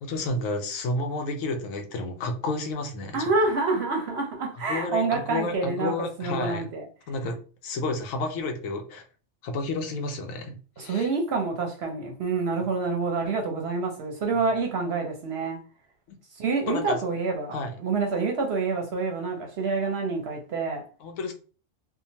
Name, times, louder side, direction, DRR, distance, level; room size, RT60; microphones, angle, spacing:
voice 1, 0.0-3.3 4.7-6.6 7.1-7.4 7.6-9.0 9.4-11.1 16.7-17.0 17.5-17.7 21.0-21.3, left 2 dB, 75° left, 1.0 m, -31 dB
voice 2, 3.1-5.9 6.2-6.9 10.8-15.6 16.4-20.8, right 4 dB, 60° right, 0.7 m, -27 dB
2.8 x 2.1 x 2.7 m
omnidirectional pair, 1.4 m